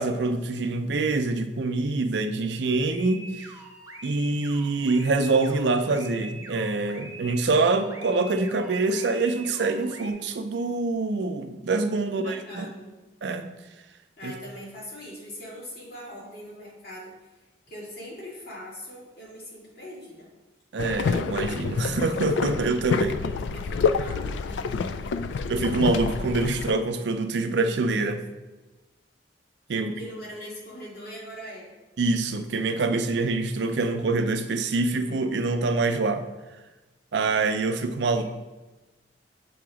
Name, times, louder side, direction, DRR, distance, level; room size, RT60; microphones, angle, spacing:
voice 1, 0.0-3.5 4.0-12.7 13.2-13.5 14.2-14.3 20.7-23.2 25.5-28.2 29.7-29.9 32.0-36.2 37.1-38.2, right 3 dB, 75° right, 8 dB, 0.5 m, -25 dB
sound 1, 2.9-10.1, right 2 dB, 20° right, 0.7 m, -44 dB
voice 2, 12.0-13.0 14.2-17.3 17.7-20.3 23.2-25.2 29.7-31.7 38.1-38.2, equal, 55° left, -6 dB, 2.1 m, -41 dB
sound 2, 20.8-26.7, left 5 dB, 80° left, 0.3 m, -28 dB
6.8 x 2.9 x 4.9 m, 1.1 s
head